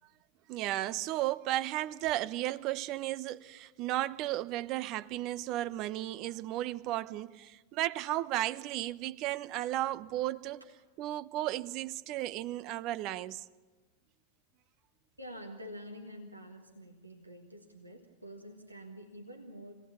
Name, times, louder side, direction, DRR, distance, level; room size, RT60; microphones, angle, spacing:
voice 1, 0.5-10.6 11.0-13.4, right 15 dB, 40° right, 0.6 m, -34 dB
voice 2, 15.2-19.7, equal, 85° right, 1.6 m, -47 dB
25.0 x 18.5 x 7.1 m
figure-of-eight pair, 90°, 0 cm